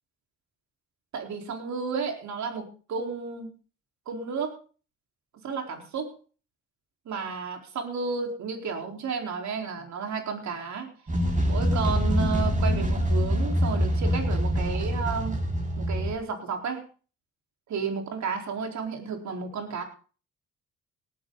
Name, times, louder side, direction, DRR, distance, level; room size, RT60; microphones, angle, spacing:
voice 1, 1.1-3.5 4.1-4.5 5.4-6.1 7.1-10.9 11.4-15.4 15.8-16.8 17.7-19.8, right 5 dB, 65° right, 3 dB, 4.1 m, -32 dB
sound 1, 11.1-16.1, equal, 25° right, 7.0 m, -25 dB
18.5 x 12.5 x 4.0 m, 0.39 s
cardioid pair, 90°, 30 cm